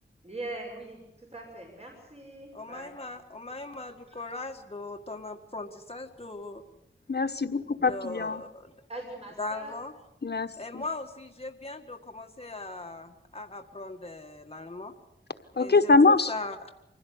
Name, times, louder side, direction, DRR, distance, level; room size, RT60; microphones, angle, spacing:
voice 1, 0.2-2.9 8.9-9.7, right 2 dB, 35° right, 1 dB, 5.9 m, -41 dB
voice 2, 2.5-6.6 7.8-8.7 9.4-9.9 10.5-14.9 15.5-16.7, left 2 dB, 30° left, 3 dB, 1.9 m, -39 dB
voice 3, 7.1-8.4 10.2-10.8 15.6-16.3, left 3 dB, 60° left, 9 dB, 1.3 m, -23 dB
24.5 x 16.5 x 8.3 m, 0.86 s
wide cardioid pair, 75°, 19 cm